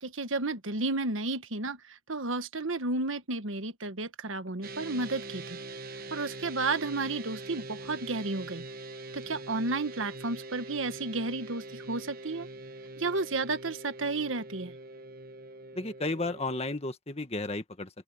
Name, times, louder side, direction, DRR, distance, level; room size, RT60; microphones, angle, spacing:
voice 1, 0.0-5.6 6.1-8.6 9.1-12.5 13.0-14.7, right 3 dB, 80° right, 1.4 m, -32 dB
sound 1, 4.6-16.8, right 2 dB, 50° right, 1.1 m, -43 dB
voice 2, 15.7-17.9, left 2 dB, 30° left, 1.7 m, -33 dB
open air
head